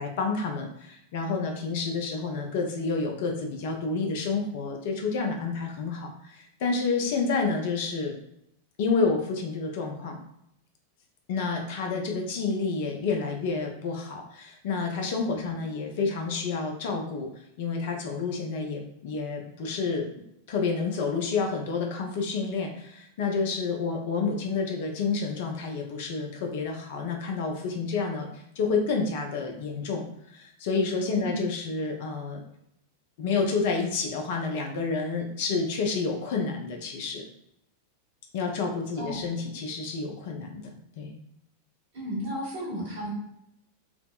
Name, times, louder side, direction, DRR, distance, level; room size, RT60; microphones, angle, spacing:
voice 1, 0.0-8.1 8.8-10.2 11.3-17.3 17.6-20.1 20.5-32.4 33.2-37.2 38.3-41.2, left 4 dB, 50° left, 2 dB, 0.5 m, -29 dB
voice 2, 15.3-15.7 31.2-31.5 39.0-39.3 41.9-43.1, equal, 55° right, -5 dB, 1.3 m, -34 dB
3.3 x 2.0 x 2.3 m, 0.77 s
figure-of-eight pair, 90°, 0 cm